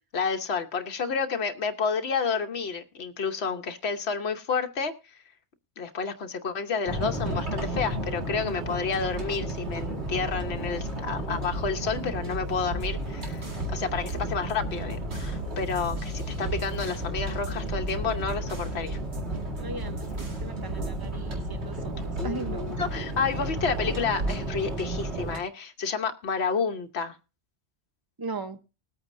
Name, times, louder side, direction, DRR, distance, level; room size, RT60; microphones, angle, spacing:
voice 1, 0.1-4.9 5.8-19.0 22.2-27.2, left 5 dB, 70° left, 6 dB, 1.3 m, -30 dB
sound 1, 6.9-25.4, right 1 dB, 80° right, 2.4 m, -32 dB
sound 2, 12.5-13.7 14.1-17.1 17.4-18.8 19.1-20.5 20.8-21.2, right 2 dB, 40° right, 1.7 m, -46 dB
voice 2, 19.6-22.7 28.2-28.6, right 3 dB, 20° right, 8 dB, 1.0 m, -38 dB
20.5 x 8.6 x 2.6 m, 0.32 s
omnidirectional pair, 1.1 m